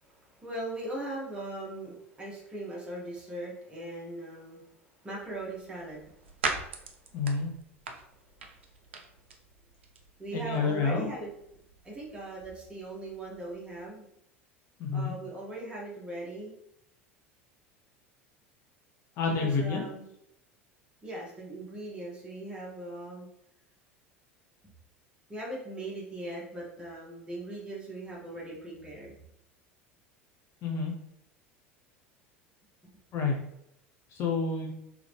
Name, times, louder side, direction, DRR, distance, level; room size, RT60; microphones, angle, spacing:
voice 1, 0.0-4.7 5.0-6.1 10.2-11.3 11.8-14.1 14.9-16.5 19.4-20.1 21.0-23.3 25.3-29.2, right 1 dB, 15° right, -5 dB, 1.6 m, -39 dB
sound 1, 5.2-13.9, right 4 dB, 70° right, 0.5 m, -42 dB
voice 2, 7.1-7.5 10.3-11.1 14.8-15.1 19.2-19.9 30.6-30.9 33.1-33.4 34.1-34.7, left 4 dB, 40° left, 1 dB, 0.8 m, -29 dB
3.8 x 3.1 x 3.5 m, 0.78 s
figure-of-eight pair, 75°, 7 cm